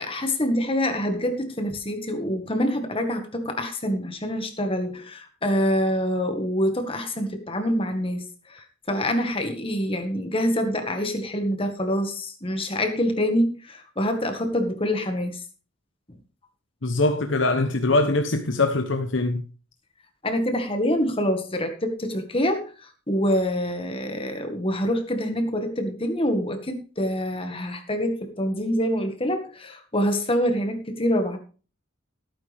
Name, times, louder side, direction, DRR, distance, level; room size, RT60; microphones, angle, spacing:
voice 1, 0.0-15.4 20.2-31.4, equal, 25° left, 1.8 m, -26 dB
voice 2, 16.8-19.4, left 2 dB, 75° left, 1.0 m, -22 dB
16.5 x 9.3 x 3.5 m
head